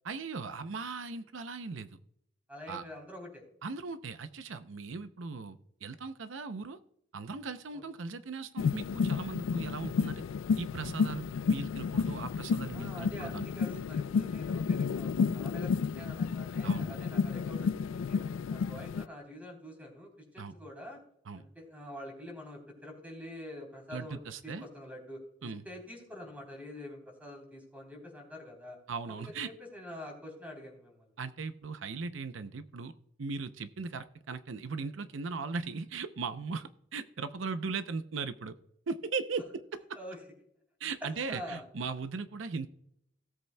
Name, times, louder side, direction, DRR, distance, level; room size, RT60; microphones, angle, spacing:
voice 1, 0.0-2.0 2.7-2.8 3.6-6.8 7.1-10.2 10.6-13.5 16.6-16.9 20.4-20.5 21.3-21.4 23.9-24.7 25.4-25.6 28.9-29.5 31.2-38.6 38.9-39.8 40.8-42.7, right 4 dB, 85° right, 11 dB, 0.6 m, -38 dB
voice 2, 2.5-3.4 7.7-7.8 12.7-18.3 18.5-21.0 21.3-25.2 25.7-28.8 29.1-31.1 40.0-40.2 41.3-41.6, left 1 dB, 10° right, 2 dB, 3.5 m, -46 dB
sound 1, 8.6-19.0, left 5 dB, 85° left, 0.3 m, -31 dB
17.5 x 8.0 x 2.2 m, 0.74 s
head